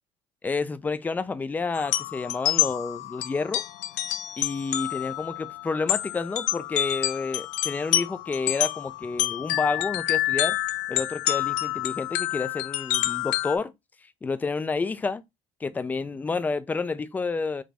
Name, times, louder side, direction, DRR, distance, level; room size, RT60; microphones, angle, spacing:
voice 1, 0.4-3.6 4.4-10.6 10.9-13.7 14.2-15.2 15.6-17.6, left 4 dB, 15° left, 0.3 m, -29 dB
sound 1, 1.7-13.6, left 15 dB, 80° left, 0.6 m, -28 dB
4.9 x 2.6 x 3.4 m
cardioid pair, 160°, 13 cm